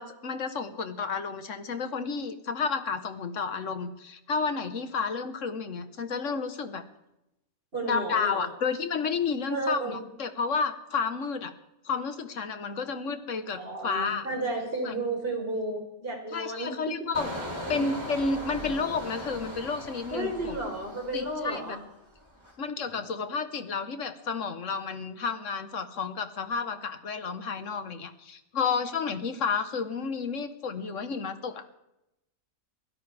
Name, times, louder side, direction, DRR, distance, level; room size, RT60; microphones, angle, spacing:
voice 1, 0.0-6.8 7.8-11.5 11.8-14.3 14.8-15.0 16.3-17.3 17.7-20.6 21.1-21.8 22.6-31.6, left 5 dB, 65° left, 9 dB, 1.6 m, -31 dB
voice 2, 7.7-8.5 9.5-10.0 13.5-17.1 17.6-17.9 20.1-21.8, right 2 dB, 40° right, 0 dB, 4.5 m, -33 dB
Engine, 17.1-21.8 22.2-22.5, equal, 20° right, 3.8 m, -39 dB
23.5 x 16.5 x 3.5 m, 0.87 s
omnidirectional pair, 1.4 m